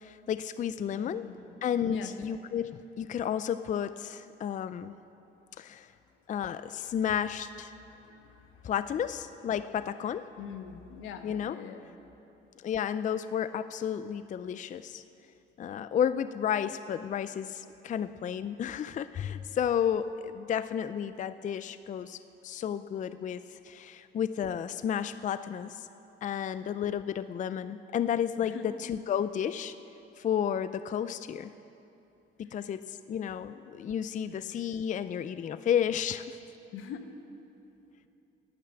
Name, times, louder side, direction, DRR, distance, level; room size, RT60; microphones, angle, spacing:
voice 1, 0.0-1.3 1.6-4.9 5.6-5.9 6.3-7.7 8.6-10.2 11.2-11.6 12.6-15.0 15.6-25.9 26.2-29.7 30.2-31.5 32.4-36.4, left 9 dB, 40° left, 13 dB, 0.4 m, -32 dB
voice 2, 0.9-1.5 1.8-2.1 7.8-8.7 10.4-11.9 28.4-28.7 32.4-32.7 34.3-34.4 36.7-37.0, left 8 dB, 85° left, 7 dB, 1.0 m, -44 dB
12.0 x 10.0 x 7.7 m, 2.8 s
cardioid pair, 90°, 20 cm